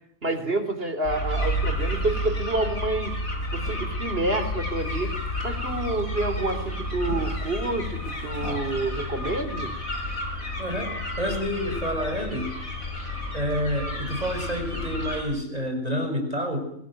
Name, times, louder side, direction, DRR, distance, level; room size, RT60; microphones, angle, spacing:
voice 1, 0.2-3.2 3.5-5.1 5.4-9.7, right 2 dB, 45° right, 9 dB, 3.9 m, -28 dB
sound 1, 1.0-15.2, left 1 dB, 85° left, 7.0 m, -31 dB
voice 2, 10.6-12.5 13.3-16.7, equal, 25° right, 5 dB, 6.6 m, -29 dB
24.0 x 21.5 x 9.1 m, 0.72 s
omnidirectional pair, 1.4 m